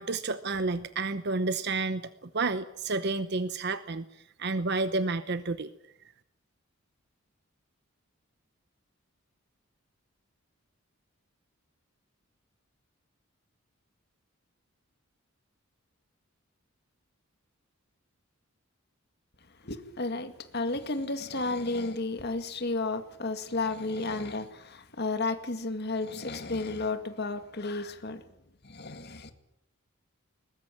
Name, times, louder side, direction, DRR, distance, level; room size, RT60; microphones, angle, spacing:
voice 1, 0.0-5.7, right 3 dB, 50° right, 0.9 m, -30 dB
voice 2, 19.6-28.2 28.6-29.3, left 3 dB, 50° left, 2.1 m, -32 dB
21.5 x 20.5 x 8.8 m
head